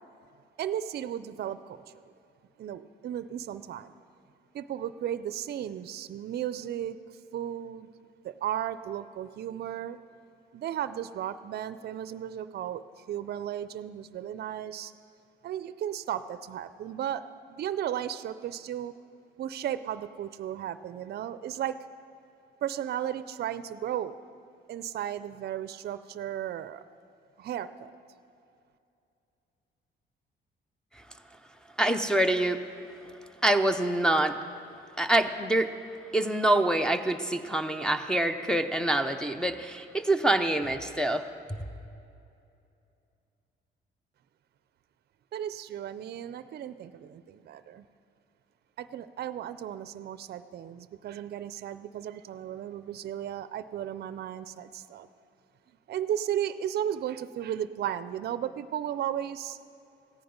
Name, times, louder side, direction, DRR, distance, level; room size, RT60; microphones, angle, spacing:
voice 1, 0.6-1.8 2.6-3.9 4.5-7.0 7.3-7.9 8.2-10.0 10.5-14.9 15.4-17.2 17.5-18.9 19.4-21.8 22.6-24.1 24.7-26.8 27.4-27.9 45.3-47.8 48.8-55.1 55.9-59.6, right 10 dB, 55° right, 14 dB, 0.5 m, -35 dB
voice 2, 31.8-32.6 33.4-34.4 35.0-35.7 36.1-41.2, right 1 dB, 5° left, 4 dB, 0.6 m, -25 dB
14.5 x 9.8 x 5.2 m, 2.6 s
cardioid pair, 90°, 20 cm